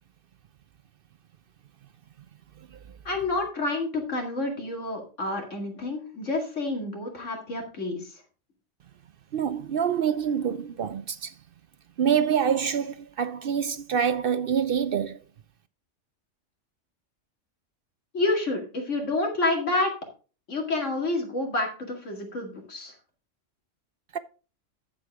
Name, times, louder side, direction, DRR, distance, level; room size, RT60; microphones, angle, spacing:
voice 1, 3.0-8.2 18.1-19.9 20.5-22.9, left 2 dB, 75° left, 2.4 m, -29 dB
voice 2, 9.3-11.3 12.0-15.2 24.1-24.2, right 8 dB, 60° right, 0.6 m, -26 dB
10.5 x 7.7 x 3.5 m
omnidirectional pair, 1.3 m